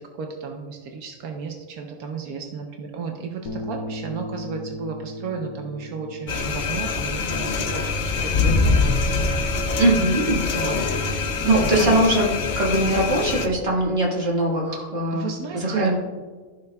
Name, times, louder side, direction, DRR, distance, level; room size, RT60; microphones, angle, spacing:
voice 1, 0.0-9.1 10.5-12.0 14.7-14.8 15.1-15.9, right 5 dB, 85° right, 3 dB, 1.3 m, -33 dB
sound 1, 3.5-9.7, left 1 dB, 90° left, 1.2 m, -38 dB
sound 2, 6.3-13.5, left 4 dB, 55° left, 0.5 m, -24 dB
voice 2, 9.8-10.4 11.4-12.3 12.6-16.0, right 1 dB, 45° right, -3 dB, 2.0 m, -21 dB
14.0 x 5.6 x 2.3 m, 1.4 s
omnidirectional pair, 1.5 m